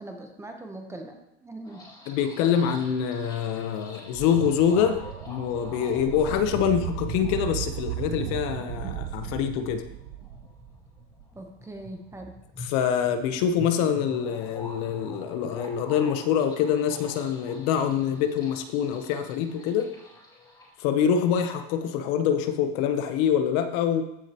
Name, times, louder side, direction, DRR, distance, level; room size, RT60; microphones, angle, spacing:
voice 1, 0.0-1.9 2.6-2.7 11.3-12.4, right 2 dB, 10° right, 3 dB, 0.8 m, -41 dB
sound 1, 1.6-20.7, left 1 dB, 15° left, 2.5 m, -46 dB
voice 2, 2.1-9.8 12.6-19.9 20.8-24.0, left 8 dB, 50° left, 9 dB, 0.8 m, -25 dB
sound 2, 4.1-11.2, right 14 dB, 80° right, 0.5 m, -36 dB
14.5 x 6.3 x 2.9 m, 0.85 s
supercardioid pair, 150°, 32 cm